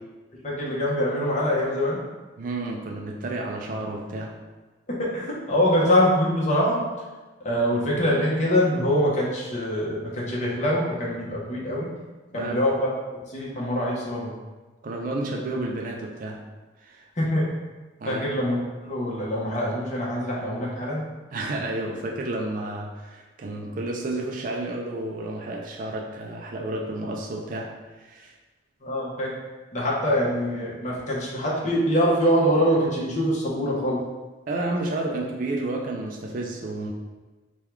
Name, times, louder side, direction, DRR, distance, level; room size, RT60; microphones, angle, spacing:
voice 1, 0.4-2.0 4.9-6.8 7.4-11.9 12.3-12.9 13.3-14.3 17.2-17.4 18.1-21.0 28.8-29.3 29.7-34.0, equal, 40° left, -5 dB, 0.9 m, -24 dB
voice 2, 2.4-4.4 12.3-12.6 14.8-16.4 16.8-17.1 18.0-18.2 21.3-28.3 34.5-36.9, right 2 dB, 45° right, -1 dB, 0.3 m, -31 dB
3.6 x 2.3 x 4.4 m, 1.3 s
head